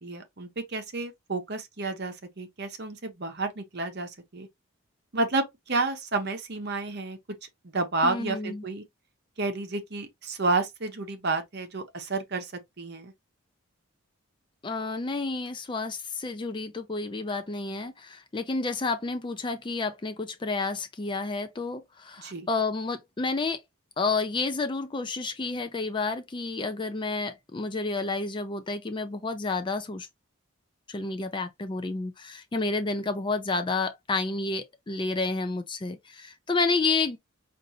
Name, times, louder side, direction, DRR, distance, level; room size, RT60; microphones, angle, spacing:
voice 1, 0.0-4.5 5.1-7.2 7.6-8.8 9.4-13.1 22.2-22.5, right 3 dB, 50° right, 0.8 m, -30 dB
voice 2, 8.0-8.6 14.6-23.6 24.0-30.1 30.9-37.2, left 3 dB, 20° left, 0.4 m, -30 dB
5.1 x 2.6 x 2.8 m
head